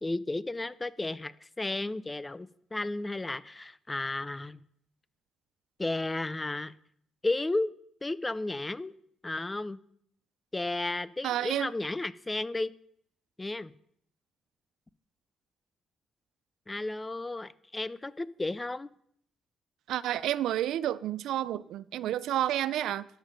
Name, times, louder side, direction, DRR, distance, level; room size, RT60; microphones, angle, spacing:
voice 1, 0.0-4.6 5.8-6.7 7.2-7.7 8.0-8.9 9.2-9.8 10.5-12.7 13.4-13.7 16.7-18.9, left 2 dB, 20° left, 0.5 m, -33 dB
voice 2, 11.2-11.7 19.9-23.1, right 12 dB, 80° right, 0.3 m, -30 dB
12.5 x 5.6 x 5.1 m
cardioid pair, 75°, 0 cm